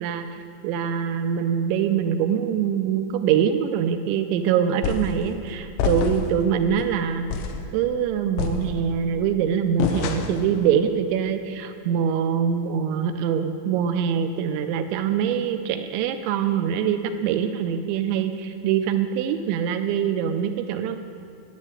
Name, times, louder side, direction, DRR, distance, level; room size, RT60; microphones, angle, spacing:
voice 1, 0.0-7.3 7.7-21.0, right 8 dB, 85° right, 8 dB, 2.7 m, -24 dB
sound 1, 4.8-5.2 5.8-6.4 6.8-6.9 7.3-7.7 8.4-9.1 9.8-10.5, left 5 dB, 85° left, 3.4 m, -27 dB
11.5 x 7.3 x 9.9 m, 2.6 s
omnidirectional pair, 5.7 m